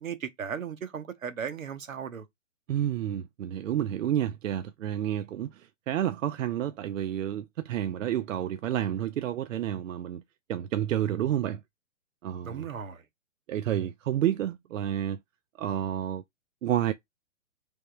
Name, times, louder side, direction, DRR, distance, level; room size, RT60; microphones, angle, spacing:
voice 1, 0.0-2.3 12.4-13.1, right 7 dB, 90° right, 0.9 m, -36 dB
voice 2, 2.7-10.2 10.5-11.6 12.2-12.7 13.5-15.2 15.6-16.2 16.6-16.9, right 11 dB, 75° right, 0.5 m, -30 dB
3.5 x 2.9 x 4.4 m
hypercardioid pair, 130°, 39 cm